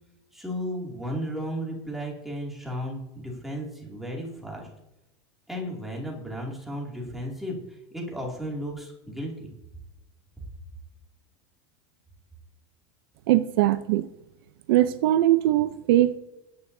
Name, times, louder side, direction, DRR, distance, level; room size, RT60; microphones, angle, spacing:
voice 1, 0.3-4.7 5.5-9.5, equal, ahead, 2.4 m, -34 dB
voice 2, 13.3-14.1 14.7-16.2, right 14 dB, 60° right, 0.5 m, -21 dB
20.5 x 9.5 x 2.7 m
supercardioid pair, 170°, 13 cm